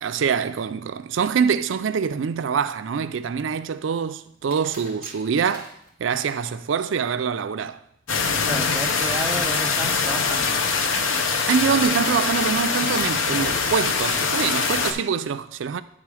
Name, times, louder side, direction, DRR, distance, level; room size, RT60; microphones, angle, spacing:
voice 1, 0.0-5.7 6.0-7.8 11.1-15.8, right 6 dB, 80° right, 0.4 m, -25 dB
sound 1, 3.0-3.8 4.5-6.5, left 1 dB, 45° left, 1.7 m, -45 dB
sound 2, 8.1-14.9, left 5 dB, 85° left, 0.7 m, -23 dB
voice 2, 8.5-10.5 14.8-15.1, right 2 dB, 10° right, 0.3 m, -32 dB
9.7 x 3.8 x 4.8 m
head